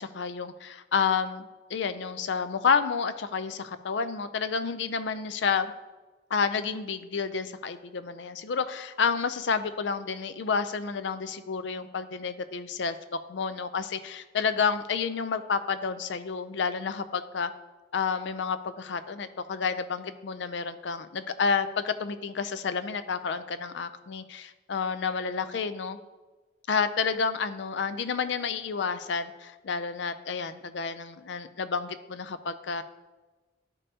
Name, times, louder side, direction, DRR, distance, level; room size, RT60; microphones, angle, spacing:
voice 1, 0.0-1.4 1.7-5.7 6.3-13.0 13.3-17.5 17.9-26.0 26.7-32.8, left 5 dB, 70° left, 12 dB, 0.4 m, -30 dB
11.0 x 5.3 x 2.8 m, 1.2 s
head